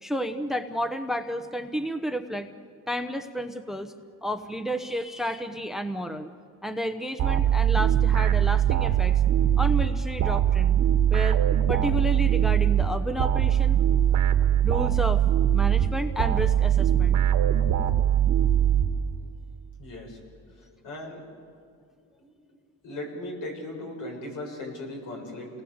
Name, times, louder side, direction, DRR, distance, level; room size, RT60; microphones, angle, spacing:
voice 1, 0.0-2.5 2.9-3.9 4.2-6.3 6.6-9.2 9.6-10.8 11.1-11.4 11.7-13.8 14.6-15.2 15.5-17.2, equal, ahead, 7 dB, 0.9 m, -31 dB
sound 1, 7.2-19.4, right 10 dB, 70° right, 1.6 m, -22 dB
voice 2, 19.8-20.2 20.6-21.2 22.2-22.6 22.8-25.5, left 1 dB, 75° left, 1 dB, 7.2 m, -38 dB
29.5 x 19.5 x 8.0 m, 2.3 s
cardioid pair, 130°, 32 cm